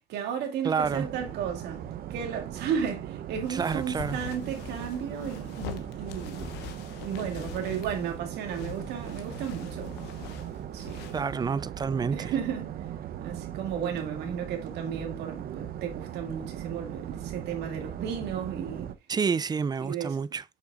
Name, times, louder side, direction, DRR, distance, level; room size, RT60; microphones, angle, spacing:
voice 1, 0.1-1.8 2.1-6.5 7.0-10.0 10.7-11.1 12.1-12.9 13.2-18.9 19.8-20.2, right 8 dB, 80° right, 2.3 m, -34 dB
voice 2, 0.6-1.1 3.5-4.2 11.1-12.3 19.1-20.4, right 5 dB, 25° right, 0.4 m, -29 dB
sound 1, 0.8-18.9, right 10 dB, 60° right, 0.8 m, -39 dB
sound 2, 3.4-11.5, left 9 dB, 90° left, 1.1 m, -43 dB
7.7 x 5.9 x 2.4 m
cardioid pair, 110°, 17 cm